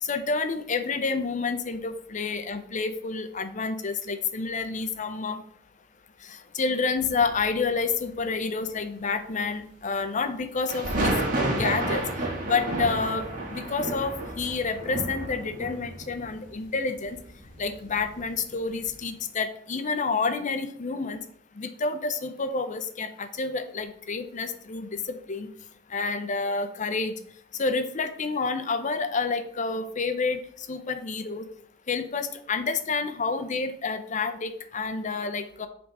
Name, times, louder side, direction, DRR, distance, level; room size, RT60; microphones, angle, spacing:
voice 1, 0.0-5.4 6.5-11.2 11.5-12.0 12.4-17.2 17.6-21.2 21.6-25.5 25.9-27.1 27.6-30.4 30.7-31.5 31.9-35.7, left 4 dB, 40° left, 10 dB, 0.7 m, -29 dB
sound 1, 7.0-7.6 10.7-18.4 18.8-19.0, right 1 dB, 45° right, 1.8 m, -31 dB
7.5 x 3.6 x 5.3 m, 0.64 s
head